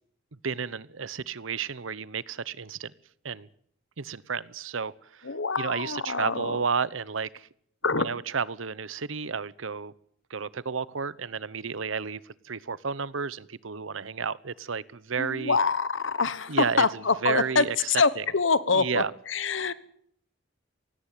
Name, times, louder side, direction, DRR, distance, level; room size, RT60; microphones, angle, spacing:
voice 1, 0.4-2.9 3.2-3.5 4.0-5.3 5.6-7.5 7.9-9.9 10.3-15.6 16.5-18.2 18.7-19.1, right 5 dB, 80° right, 20 dB, 0.8 m, -32 dB
voice 2, 5.2-6.6 7.8-8.1 15.2-19.7, left 4 dB, 75° left, 17 dB, 1.3 m, -25 dB
18.0 x 17.0 x 9.1 m, 0.66 s
head